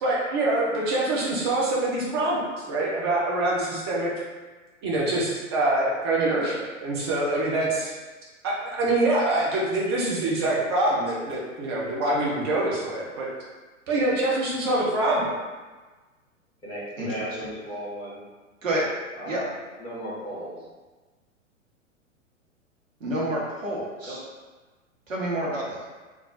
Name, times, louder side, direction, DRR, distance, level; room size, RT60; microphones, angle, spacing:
voice 1, 0.0-4.1 4.8-7.9 8.7-13.3 13.9-15.4, right 2 dB, 20° right, -5 dB, 0.4 m, -25 dB
voice 2, 16.6-18.2 19.2-19.5 19.8-20.6 24.0-24.2, right 1 dB, 10° left, -10 dB, 1.3 m, -35 dB
voice 3, 23.0-24.2 25.1-25.8, right 1 dB, 75° right, -4 dB, 1.0 m, -28 dB
3.6 x 2.3 x 2.3 m, 1.3 s
figure-of-eight pair, 105°, 40 cm